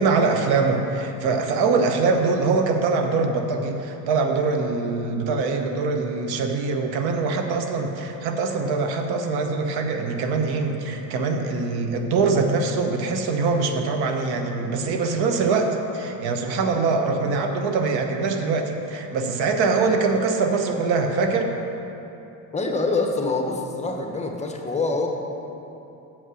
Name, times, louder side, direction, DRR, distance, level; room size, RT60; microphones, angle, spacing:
voice 1, 0.0-21.5, right 4 dB, 70° right, 5 dB, 0.9 m, -23 dB
voice 2, 22.5-25.1, left 3 dB, 15° left, 2 dB, 0.8 m, -25 dB
7.1 x 5.5 x 6.2 m, 2.9 s
cardioid pair, 110°, 40 cm